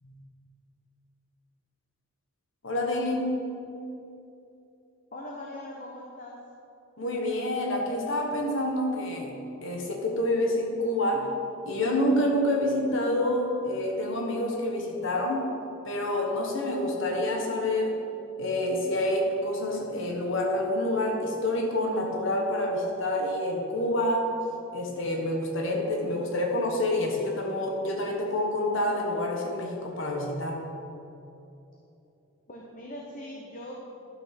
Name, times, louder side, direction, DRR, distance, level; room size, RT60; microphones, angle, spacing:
voice 1, 2.6-3.4 7.0-9.4 9.6-11.3 11.7-15.5 15.8-18.0 18.4-24.4 24.7-30.6, left 1 dB, 60° left, 1 dB, 1.3 m, -27 dB
voice 2, 5.1-6.4 32.5-33.7, left 1 dB, 40° left, -2 dB, 0.9 m, -41 dB
11.5 x 6.1 x 4.4 m, 2.8 s
head